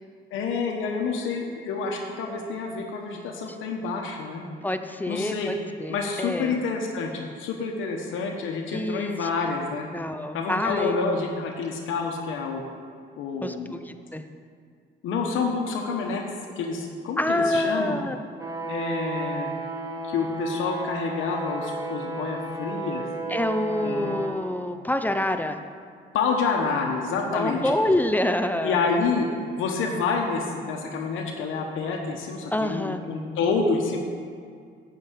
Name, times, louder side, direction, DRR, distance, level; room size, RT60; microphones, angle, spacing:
voice 1, 0.3-4.4 5.1-5.5 5.9-9.9 10.3-12.6 13.2-13.8 15.0-16.2 16.6-18.0 18.7-19.5 20.0-23.0 23.8-24.2 26.1-27.6 28.6-29.3 29.6-34.0, left 4 dB, 85° left, 1 dB, 1.1 m, -28 dB
voice 2, 4.6-6.6 8.7-9.3 9.9-11.0 13.4-14.2 17.2-18.2 23.3-25.6 27.3-28.9 32.5-33.0, left 1 dB, 10° left, 7 dB, 0.6 m, -27 dB
sound 1, 18.4-24.3, right 2 dB, 20° right, 1.8 m, -33 dB
9.2 x 5.8 x 8.2 m, 2.2 s
cardioid pair, 90°, 20 cm